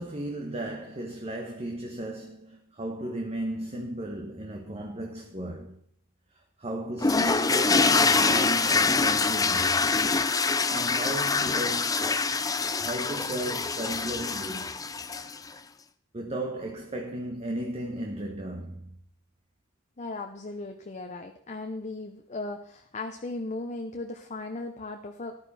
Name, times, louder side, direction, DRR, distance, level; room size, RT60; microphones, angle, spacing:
voice 1, 0.0-5.8 6.6-9.9 10.7-14.7 16.1-19.0, right 1 dB, 30° right, 1.4 m, -35 dB
sound 1, 7.0-15.5, left 4 dB, 20° left, 0.6 m, -25 dB
voice 2, 20.0-25.4, left 2 dB, 35° left, 0.9 m, -37 dB
14.0 x 11.5 x 4.3 m
head